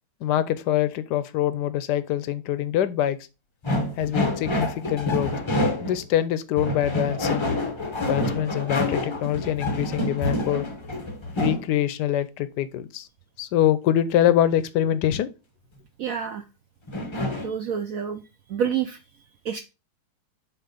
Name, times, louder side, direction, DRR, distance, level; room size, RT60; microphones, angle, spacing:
voice 1, 0.2-3.2 4.0-5.3 5.8-7.5 8.1-10.7 11.4-13.1 13.4-15.3, left 11 dB, 75° left, 1.1 m, -24 dB
sound 1, 3.6-6.1 6.6-11.7 16.9-17.5, left 1 dB, 35° left, 0.5 m, -27 dB
voice 2, 16.0-16.5 17.4-18.2 18.5-19.0 19.4-19.6, right 8 dB, 70° right, 0.8 m, -28 dB
7.4 x 2.9 x 5.1 m
omnidirectional pair, 2.0 m